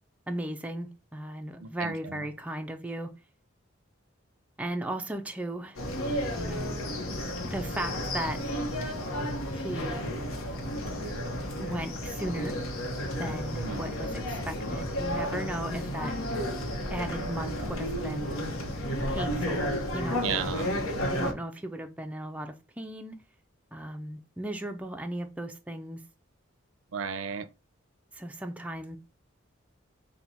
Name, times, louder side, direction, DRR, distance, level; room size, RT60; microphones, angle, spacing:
voice 1, 0.3-3.1 4.6-5.8 6.3-6.8 7.4-8.4 9.5-10.1 11.6-12.6 13.2-16.2 16.9-18.3 19.1-20.3 21.1-23.2 23.7-26.0 28.1-29.0, right 1 dB, 5° right, 0.3 m, -36 dB
voice 2, 1.6-2.2 13.5-13.9 20.2-20.7 26.9-27.5, right 7 dB, 75° right, 0.4 m, -34 dB
sound 1, 5.8-21.3, equal, 85° left, 0.8 m, -32 dB
4.0 x 2.2 x 4.3 m
head